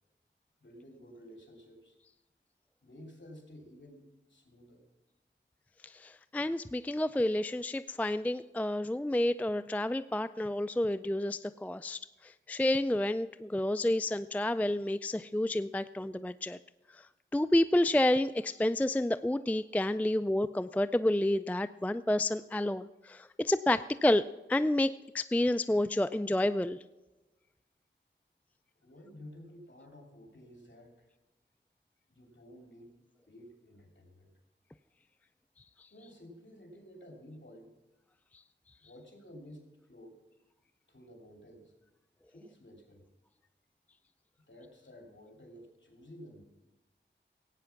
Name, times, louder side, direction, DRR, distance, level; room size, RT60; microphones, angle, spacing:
voice 1, 0.6-2.0 2.8-4.0 4.3-4.9 28.8-31.1 32.1-32.9 33.3-34.3 35.9-37.7 38.8-40.2 40.9-41.7 42.3-43.0 44.5-46.4, equal, 70° left, 2 dB, 2.8 m, -52 dB
voice 2, 5.8-12.0 12.5-16.6 17.3-26.8, left 1 dB, 10° left, 13 dB, 0.3 m, -29 dB
16.5 x 9.1 x 5.8 m, 1.1 s
wide cardioid pair, 50°, 20 cm